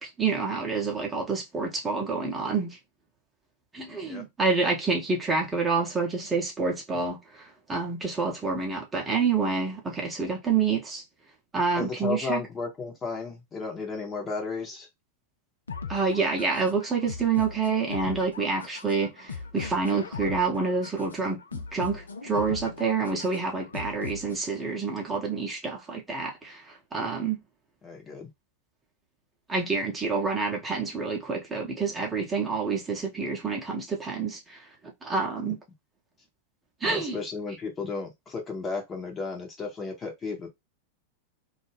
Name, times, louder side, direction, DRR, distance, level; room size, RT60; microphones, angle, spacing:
voice 1, 0.0-2.8 3.7-11.0 11.5-12.4 15.9-21.4 21.7-27.4 29.5-34.7 35.0-35.6 36.8-37.2, right 4 dB, 15° right, 0.8 m, -28 dB
voice 2, 11.8-14.9 27.8-28.3 35.4-35.5 36.8-40.5, left 4 dB, 20° left, 0.8 m, -34 dB
sound 1, 15.7-24.7, left 5 dB, 75° left, 0.3 m, -39 dB
2.4 x 2.0 x 3.3 m
figure-of-eight pair, 90°, 0 cm